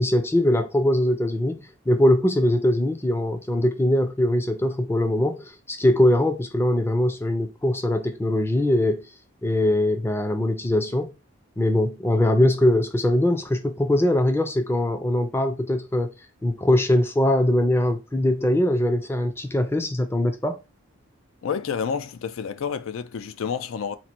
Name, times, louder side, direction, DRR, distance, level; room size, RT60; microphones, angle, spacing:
voice 1, 0.0-9.1 9.4-11.2 11.6-16.1 16.4-20.6, left 1 dB, 10° left, 0.5 m, -22 dB
voice 2, 21.4-24.0, left 6 dB, 75° left, 0.4 m, -29 dB
4.2 x 2.5 x 4.3 m
head